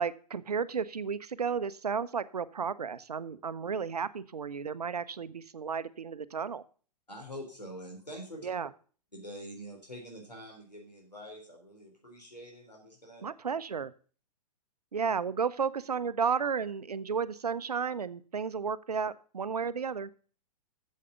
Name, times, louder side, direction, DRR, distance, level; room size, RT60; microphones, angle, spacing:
voice 1, 0.0-6.6 8.4-8.7 13.2-13.9 14.9-20.1, right 6 dB, 70° right, 15 dB, 0.7 m, -33 dB
voice 2, 7.1-8.5 9.1-13.3, equal, 85° left, 0 dB, 3.5 m, -45 dB
8.4 x 7.5 x 6.8 m, 0.41 s
figure-of-eight pair, 115°, 21 cm